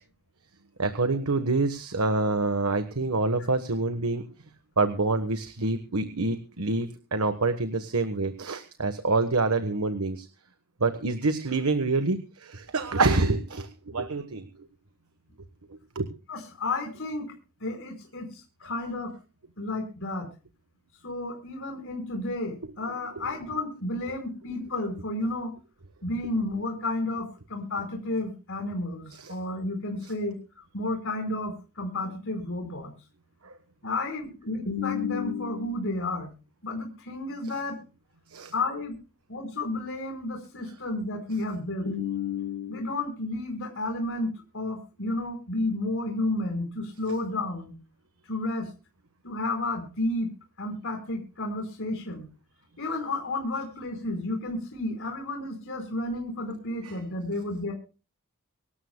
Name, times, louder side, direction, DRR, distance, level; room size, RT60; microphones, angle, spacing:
voice 1, 0.8-4.2 4.8-10.3 10.8-14.5 15.9-16.1 23.2-23.3 29.1-29.3 38.3-38.5 56.8-57.0, right 3 dB, 70° right, 9 dB, 1.3 m, -26 dB
voice 2, 16.3-17.3 17.6-19.1 19.6-20.3 21.0-25.5 26.0-32.9 33.8-36.3 36.6-37.8 38.5-39.0 39.3-47.7 48.3-48.7 49.2-50.3 50.6-52.3 52.8-57.7, left 2 dB, 60° left, 2 dB, 4.7 m, -31 dB
25.0 x 13.0 x 2.2 m, 0.34 s
head